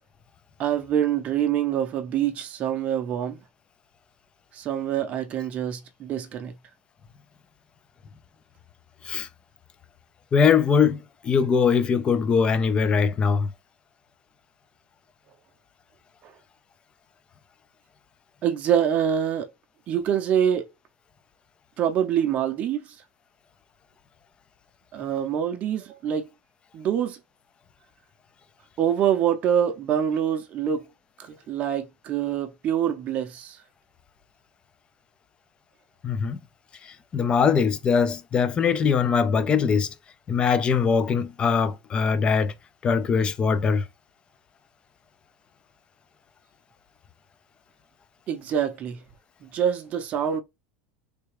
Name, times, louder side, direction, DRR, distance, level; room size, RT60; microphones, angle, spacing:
voice 1, 0.6-3.4 4.5-6.5 16.2-16.3 18.4-19.5 19.9-20.7 21.8-23.0 24.9-26.3 26.7-27.2 28.8-30.8 31.2-33.6 48.3-49.0 49.4-50.4, right 9 dB, 30° right, 0.6 m, -25 dB
voice 2, 10.3-13.5 36.0-36.4 36.8-39.9 40.3-42.5 42.8-43.9, left 6 dB, 20° left, 0.3 m, -22 dB
3.3 x 2.2 x 3.2 m
supercardioid pair, 145°, 4 cm